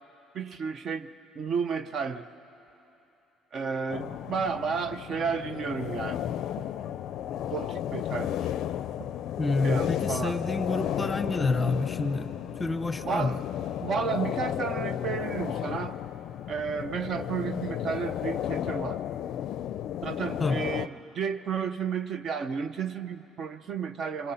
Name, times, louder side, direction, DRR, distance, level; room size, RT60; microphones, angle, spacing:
voice 1, 0.3-1.1 1.4-2.2 3.5-6.2 6.6-6.7 7.5-8.5 9.0-9.1 9.6-10.4 13.0-13.4 13.8-16.0 16.5-19.0 20.0-20.9 21.1-24.3, right 6 dB, 45° right, 11 dB, 0.7 m, -32 dB
sound 1, 3.9-20.9, left 11 dB, 65° left, 0.4 m, -33 dB
voice 2, 9.4-12.3 12.6-13.3 20.4-20.6, left 3 dB, 15° left, 9 dB, 0.8 m, -28 dB
28.0 x 25.5 x 5.7 m, 3.0 s
cardioid pair, 140°, 0 cm